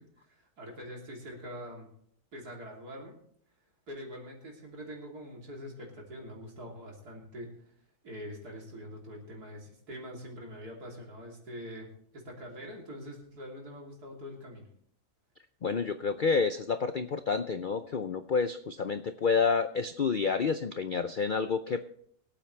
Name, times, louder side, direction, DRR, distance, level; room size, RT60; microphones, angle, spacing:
voice 1, 0.0-1.9 2.3-3.2 3.9-7.7 8.0-14.6, equal, 75° right, -1 dB, 3.7 m, -44 dB
voice 2, 15.6-21.8, left 5 dB, 75° left, 10 dB, 0.4 m, -29 dB
23.5 x 8.7 x 3.3 m, 0.65 s
omnidirectional pair, 1.7 m